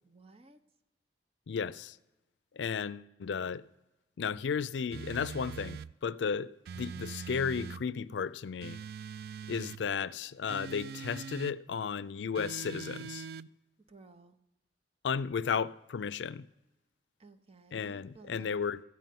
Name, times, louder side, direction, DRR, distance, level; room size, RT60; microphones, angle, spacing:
voice 1, 0.0-0.6 13.9-14.4 17.2-18.6, right 3 dB, 35° right, 0.7 m, -56 dB
voice 2, 1.5-2.0 2.5-3.6 4.2-8.8 9.5-13.3 15.0-16.5 17.7-18.8, left 6 dB, 80° left, 0.4 m, -34 dB
sound 1, 4.9-5.9 6.7-7.8 8.6-9.8 10.5-11.6 12.4-13.5, right 6 dB, 60° right, 0.3 m, -42 dB
14.5 x 5.5 x 9.2 m
head